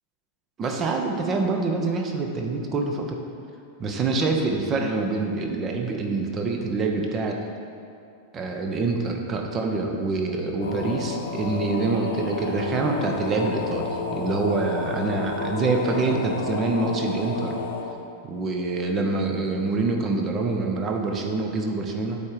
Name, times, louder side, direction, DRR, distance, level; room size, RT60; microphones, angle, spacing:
voice 1, 0.6-3.2 3.8-7.4 8.3-17.5 18.2-22.2, right 3 dB, 25° right, 2 dB, 0.8 m, -26 dB
sound 1, 10.6-17.8, left 3 dB, 60° left, 0.8 m, -31 dB
8.4 x 3.6 x 4.8 m, 2.5 s
figure-of-eight pair, 90°, 0 cm